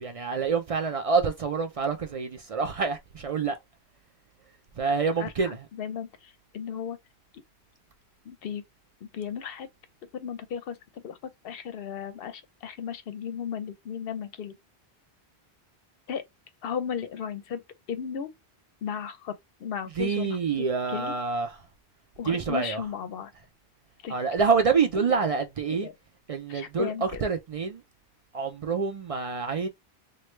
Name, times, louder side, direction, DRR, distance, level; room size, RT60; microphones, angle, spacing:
voice 1, 0.0-3.6 4.8-5.6 20.0-21.6 22.2-22.8 24.1-25.9 26.3-27.8 28.3-29.7, right 5 dB, 60° right, 0.3 m, -27 dB
voice 2, 5.2-7.0 8.2-8.6 9.0-9.7 10.1-14.6 16.1-16.2 16.6-17.6 17.9-18.3 18.8-21.1 22.2-23.3 24.0-24.2 25.0-25.1 25.7-25.9 26.5-27.2, left 7 dB, 65° left, 0.7 m, -35 dB
3.1 x 2.2 x 3.1 m
omnidirectional pair, 1.1 m